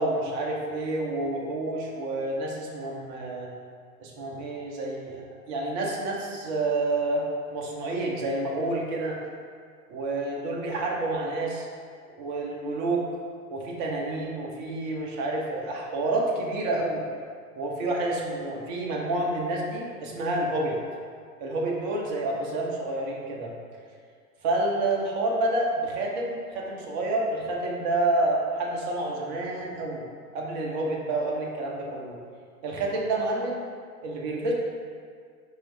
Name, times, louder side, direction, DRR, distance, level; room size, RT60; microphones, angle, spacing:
voice 1, 0.0-3.5 4.0-9.2 9.9-11.7 12.2-13.0 13.5-17.0 17.6-20.8 21.4-23.5 24.4-30.0 30.3-32.1 32.6-33.6 34.0-34.5, right 2 dB, 30° right, -2 dB, 0.6 m, -29 dB
4.5 x 2.7 x 3.2 m, 2.1 s
figure-of-eight pair, 105°, 47 cm